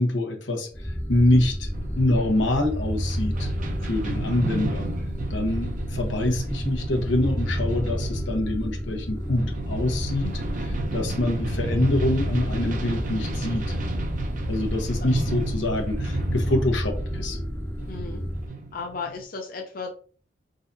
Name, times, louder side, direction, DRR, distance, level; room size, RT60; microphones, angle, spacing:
voice 1, 0.0-1.7 2.0-3.5 3.8-4.9 5.3-13.8 14.5-17.4, left 1 dB, 85° left, 3 dB, 1.1 m, -25 dB
sound 1, 0.7-18.5, equal, 15° left, 0.6 m, -30 dB
sound 2, 1.7-19.2, right 2 dB, 45° right, 0.7 m, -34 dB
voice 2, 17.9-18.2 18.7-19.9, left 4 dB, 50° left, 2 dB, 0.6 m, -35 dB
4.0 x 3.9 x 2.7 m, 0.41 s
head